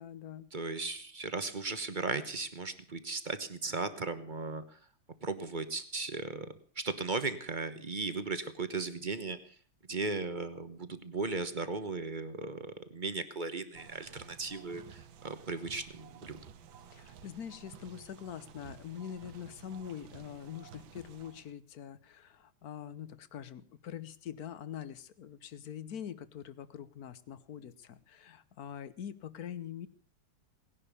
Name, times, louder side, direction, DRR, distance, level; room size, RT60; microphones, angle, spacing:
voice 1, 0.0-0.5 16.8-29.9, left 9 dB, 55° left, 16 dB, 1.3 m, -44 dB
voice 2, 0.5-4.8 5.2-9.5 9.9-16.4, right 3 dB, 30° right, 11 dB, 1.0 m, -37 dB
sound 1, 13.7-21.5, right 8 dB, 75° right, 1.7 m, -53 dB
18.5 x 11.0 x 6.8 m, 0.44 s
omnidirectional pair, 2.3 m